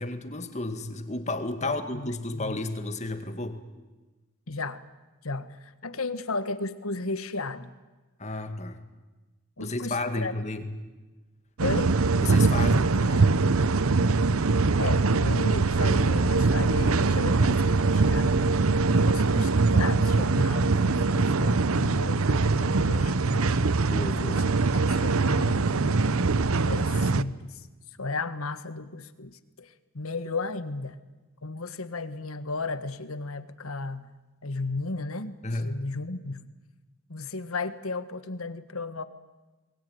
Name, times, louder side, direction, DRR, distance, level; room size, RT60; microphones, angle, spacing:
voice 1, 0.0-3.6 8.2-8.8 9.6-10.7 12.2-13.4 17.4-17.6 19.3-19.5 23.9-24.5 35.4-35.7, left 2 dB, 30° left, 8 dB, 2.0 m, -32 dB
voice 2, 1.6-2.6 4.5-4.8 5.2-7.7 9.6-10.3 11.6-11.9 14.8-18.4 18.6-23.6 24.3-24.4 24.7-26.0 26.7-27.6 28.0-31.0 31.4-34.1 34.4-36.5 37.1-39.0, left 3 dB, 80° left, 12 dB, 1.6 m, -34 dB
sound 1, 11.6-27.2, right 3 dB, 80° right, 0.8 m, -23 dB
28.0 x 21.0 x 9.6 m, 1.2 s
head